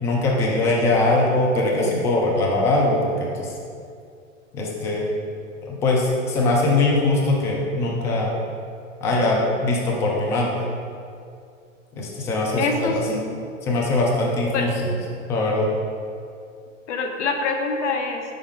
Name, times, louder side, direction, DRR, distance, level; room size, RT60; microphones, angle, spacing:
voice 1, 0.0-3.5 4.5-5.1 5.6-8.3 9.0-10.6 12.0-13.0 13.6-14.9 15.3-15.7, left 2 dB, 10° left, -2 dB, 0.3 m, -21 dB
voice 2, 12.6-13.4 14.5-14.7 16.9-18.2, left 4 dB, 65° left, 3 dB, 0.9 m, -25 dB
5.6 x 4.8 x 3.5 m, 2.4 s
hypercardioid pair, 115°, 39 cm